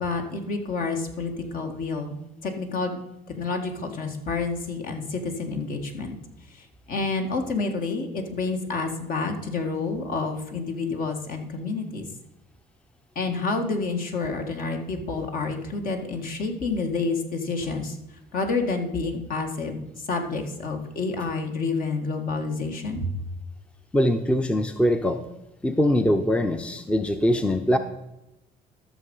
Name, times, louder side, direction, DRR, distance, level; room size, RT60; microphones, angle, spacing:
voice 1, 0.0-2.2 2.4-3.0 3.4-6.2 6.5-12.1 13.2-18.0 18.3-19.8 20.1-23.1, left 3 dB, 55° left, 4 dB, 2.0 m, -29 dB
voice 2, 23.9-25.2 25.6-27.8, equal, 5° left, 8 dB, 0.7 m, -22 dB
13.0 x 6.8 x 5.5 m, 0.93 s
cardioid pair, 110°, 17 cm